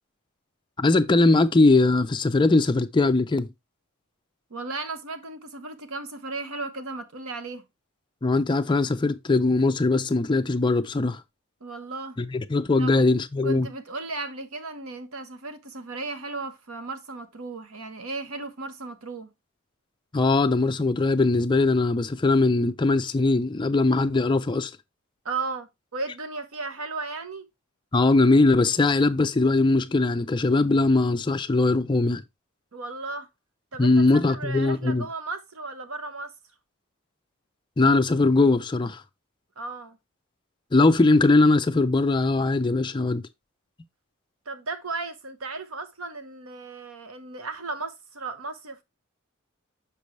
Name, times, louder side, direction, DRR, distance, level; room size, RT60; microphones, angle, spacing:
voice 1, 0.8-3.5 8.2-11.2 12.2-13.7 20.1-24.7 27.9-32.2 33.8-35.1 37.8-39.0 40.7-43.3, left 3 dB, 20° left, 0.4 m, -21 dB
voice 2, 4.5-7.6 11.6-12.2 12.8-13.0 13.4-19.3 25.2-27.5 32.7-33.3 33.7-36.3 39.6-40.0 44.5-48.8, right 3 dB, 80° right, 1.0 m, -35 dB
6.8 x 5.2 x 3.1 m
head